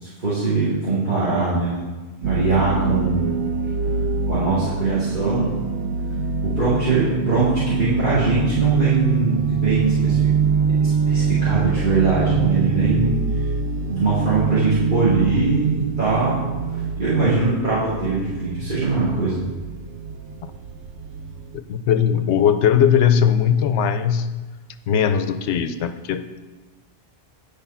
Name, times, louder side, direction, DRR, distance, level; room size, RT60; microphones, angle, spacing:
voice 1, 0.0-1.8 2.2-3.4 4.3-5.6 6.4-10.3 10.8-13.1 13.8-16.5 17.0-19.4, right 3 dB, 45° right, -12 dB, 2.5 m, -21 dB
sound 1, 2.2-21.6, right 5 dB, 85° right, 0.9 m, -24 dB
voice 2, 21.5-24.3 24.9-26.4, left 8 dB, 80° left, 11 dB, 0.9 m, -19 dB
9.4 x 5.1 x 5.6 m, 1.2 s
omnidirectional pair, 1.1 m